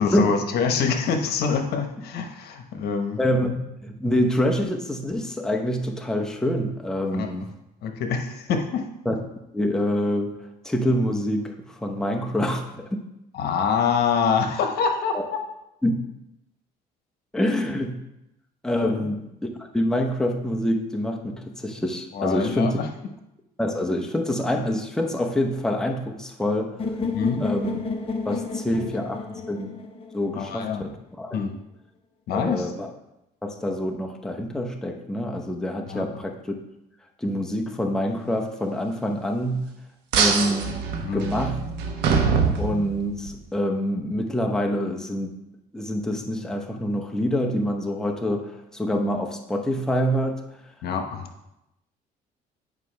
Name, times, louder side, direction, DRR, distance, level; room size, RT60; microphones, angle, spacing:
voice 1, 0.0-3.2 7.1-7.3 7.8-8.8 13.3-15.4 18.8-19.1 22.1-22.9 27.1-27.4 28.8-28.9 29.3-29.4 30.3-30.8 31.3-31.6 32.3-32.7 35.9-36.1 41.0-41.2 50.8-51.3, left 6 dB, 70° left, 5 dB, 1.0 m, -25 dB
voice 2, 3.2-7.5 9.0-9.1 9.5-10.3 10.6-13.0 15.8-15.9 17.3-18.0 18.6-19.3 19.6-22.8 23.6-26.7 27.4-27.8 28.2-29.7 30.1-31.4 32.3-32.9 33.4-36.4 37.2-39.7 40.1-40.7 41.1-41.6 42.6-45.3 45.7-50.4, equal, 5° left, 1 dB, 0.8 m, -26 dB
sound 1, 26.8-30.7, left 3 dB, 35° left, 0.9 m, -31 dB
sound 2, 40.1-43.3, right 5 dB, 85° right, 1.1 m, -24 dB
9.6 x 5.3 x 3.3 m, 0.86 s
cardioid pair, 110°, 17 cm